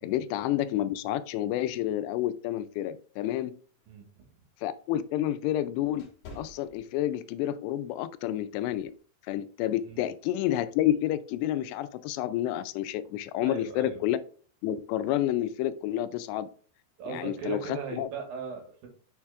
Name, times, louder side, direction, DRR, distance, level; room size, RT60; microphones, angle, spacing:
voice 1, 0.0-3.6 4.6-6.1 6.4-8.9 9.3-14.2 14.6-16.5 17.1-17.6 17.9-18.1, left 12 dB, 90° left, 2.7 m, -29 dB
sound 1, 3.7-7.4 7.9-8.1 8.7-9.0, left 2 dB, 65° left, 2.9 m, -51 dB
voice 2, 3.9-4.5 9.8-10.0 13.4-14.0 17.0-18.9, right 6 dB, 65° right, 3.0 m, -39 dB
7.2 x 6.4 x 2.4 m
omnidirectional pair, 4.8 m